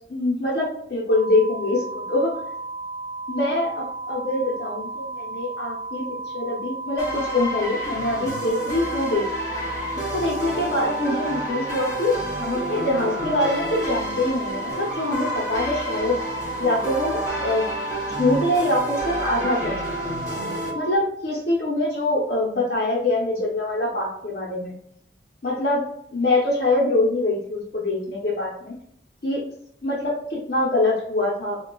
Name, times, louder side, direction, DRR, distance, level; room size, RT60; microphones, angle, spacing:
voice 1, 0.1-2.3 3.3-6.1 6.3-9.3 10.1-16.2 16.6-17.7 18.1-19.8 20.7-24.7 25.4-25.8 26.1-28.7 29.2-29.4 29.8-31.6, left 2 dB, 55° left, -6 dB, 0.8 m, -24 dB
sound 1, 1.1-21.0, right 3 dB, 90° right, 0.8 m, -34 dB
sound 2, 7.0-20.7, equal, 20° left, 1.4 m, -30 dB
4.7 x 2.3 x 2.3 m, 0.72 s
head